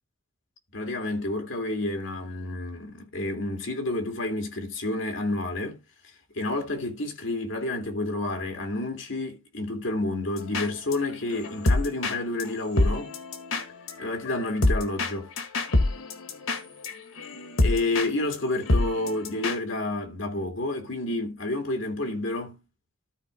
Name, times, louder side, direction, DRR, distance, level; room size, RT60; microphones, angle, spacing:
voice 1, 0.7-5.8 6.3-13.2 14.0-15.3 17.6-22.6, left 2 dB, 65° left, 2.4 m, -30 dB
sound 1, 10.4-10.9 11.3-18.1 18.3-18.4 18.7-19.6, left 2 dB, 85° left, 1.7 m, -26 dB
13.5 x 4.6 x 3.7 m
head